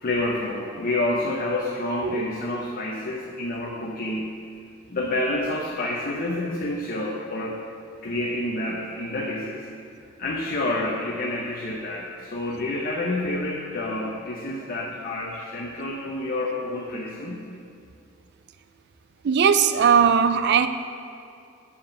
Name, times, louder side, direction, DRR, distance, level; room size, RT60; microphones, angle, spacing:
voice 1, 0.0-4.3 4.9-7.6 8.0-9.6 10.2-17.5, left 1 dB, 45° left, -2 dB, 0.7 m, -28 dB
voice 2, 19.2-20.7, right 7 dB, 55° right, 10 dB, 0.4 m, -19 dB
7.3 x 4.7 x 6.4 m, 2.4 s
head